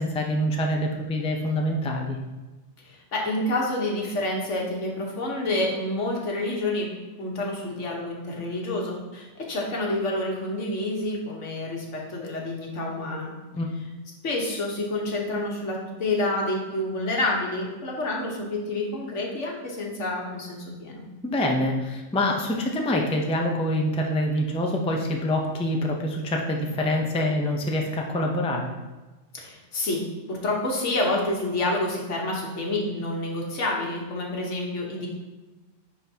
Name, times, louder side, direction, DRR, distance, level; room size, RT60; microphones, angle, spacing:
voice 1, 0.0-2.2 13.5-13.7 21.2-28.7, left 1 dB, 10° left, 1 dB, 0.4 m, -25 dB
voice 2, 2.8-6.9 7.2-13.3 14.2-21.0 29.3-35.1, left 2 dB, 75° left, -1 dB, 1.5 m, -28 dB
10.5 x 3.9 x 2.8 m, 1.2 s
omnidirectional pair, 1.2 m